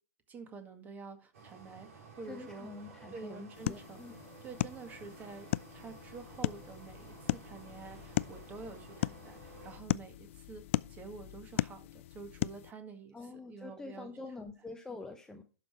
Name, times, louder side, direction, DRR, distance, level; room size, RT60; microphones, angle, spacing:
voice 1, 0.3-2.7 3.1-4.0 4.4-14.1 14.4-14.5, right 4 dB, 20° right, 7 dB, 1.8 m, -48 dB
sound 1, 1.3-9.8, right 4 dB, 60° right, 4.3 m, -54 dB
voice 2, 2.3-4.2 13.1-15.4, left 3 dB, 5° left, 4 dB, 0.9 m, -46 dB
sound 2, 3.5-12.7, left 15 dB, 50° left, 0.4 m, -37 dB
11.5 x 5.8 x 4.6 m, 0.36 s
hypercardioid pair, 120°, 9 cm